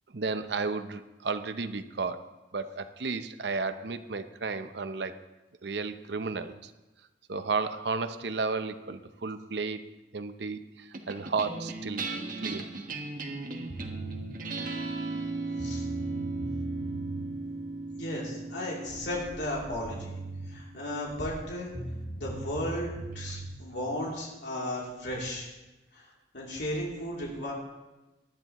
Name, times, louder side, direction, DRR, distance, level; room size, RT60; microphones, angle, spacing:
voice 1, 0.1-5.2 5.6-6.7 7.3-9.8 10.1-12.1 12.4-12.7, right 4 dB, 75° right, 10 dB, 0.7 m, -33 dB
sound 1, 10.9-21.5, right 3 dB, 50° right, 1.3 m, -37 dB
sound 2, 13.7-14.2 15.2-15.3 15.6-17.3 19.5-19.6 19.8-20.5 21.7-23.5, right 2 dB, 50° left, 3.8 m, -39 dB
voice 2, 18.0-20.1 20.5-21.7 22.2-25.5 25.9-26.0 26.3-27.5, left 1 dB, 85° left, -4 dB, 3.0 m, -35 dB
18.5 x 11.5 x 3.0 m, 1.1 s
head